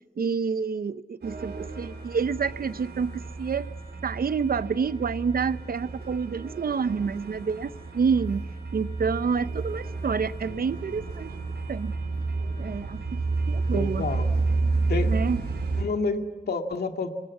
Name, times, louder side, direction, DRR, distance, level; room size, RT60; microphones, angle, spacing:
voice 1, 0.2-3.7 4.0-11.3 11.7-11.9 12.6-13.2 13.5-14.0 15.1-15.4, right 5 dB, 65° right, 14 dB, 0.8 m, -28 dB
sound 1, 1.2-15.8, right 3 dB, 90° right, 4.8 m, -31 dB
voice 2, 13.7-14.3 14.9-15.1 15.8-17.1, left 4 dB, 75° left, 5 dB, 2.1 m, -29 dB
27.0 x 21.5 x 8.4 m, 1.3 s
wide cardioid pair, 140°, 17 cm